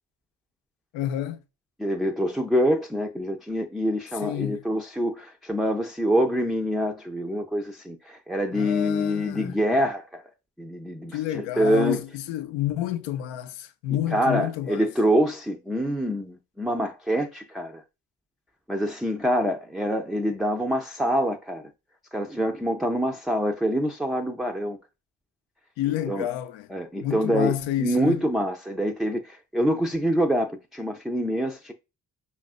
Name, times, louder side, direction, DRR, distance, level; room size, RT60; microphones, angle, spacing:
voice 1, 0.9-1.4 4.2-4.7 8.5-9.6 11.1-14.9 25.8-26.7 27.0-28.3, left 13 dB, 75° left, 0.6 m, -29 dB
voice 2, 1.8-10.2 10.6-12.0 14.1-17.8 18.7-21.7 22.1-24.8 26.1-26.3 26.7-31.7, equal, ahead, 0.4 m, -25 dB
5.3 x 2.5 x 2.4 m
hypercardioid pair, 40°, 46 cm